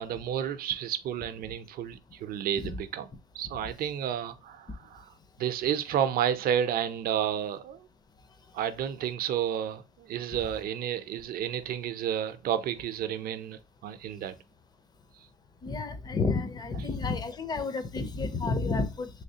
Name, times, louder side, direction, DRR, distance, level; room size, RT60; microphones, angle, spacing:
voice 1, 0.0-3.1 3.3-5.1 5.4-7.9 8.5-14.3, right 9 dB, 60° right, 0.5 m, -31 dB
voice 2, 15.6-19.1, left 4 dB, 25° left, 0.5 m, -30 dB
3.2 x 3.1 x 2.7 m
cardioid pair, 110°, 17 cm